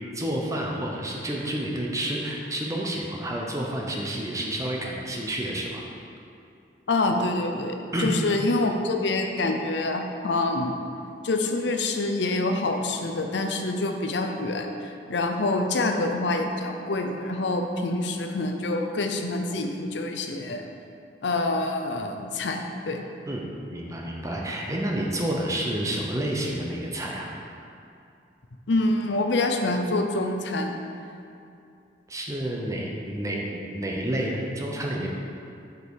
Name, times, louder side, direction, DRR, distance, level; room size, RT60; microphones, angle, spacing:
voice 1, 0.1-5.8 7.9-8.1 23.3-23.5 23.7-27.3 32.1-35.1, right 1 dB, 20° right, -2 dB, 0.7 m, -29 dB
voice 2, 6.9-10.8 11.2-20.6 21.2-23.0 28.7-30.8, left 2 dB, 70° left, 4 dB, 0.6 m, -26 dB
6.7 x 5.2 x 4.7 m, 2.6 s
head